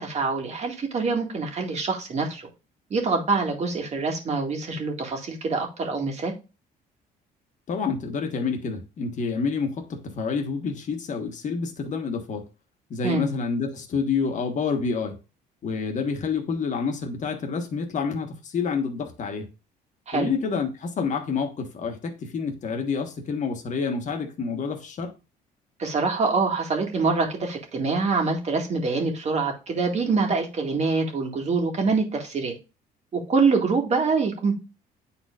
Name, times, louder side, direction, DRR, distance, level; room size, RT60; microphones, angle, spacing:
voice 1, 0.0-2.5 2.9-6.3 13.0-13.3 20.1-20.3 25.8-32.5 33.1-34.5, right 4 dB, 40° right, 1.9 m, -25 dB
voice 2, 7.7-12.5 12.9-15.2 15.6-19.5 20.1-25.1, left 5 dB, 45° left, 1.5 m, -28 dB
9.7 x 4.3 x 2.5 m
cardioid pair, 110°, 17 cm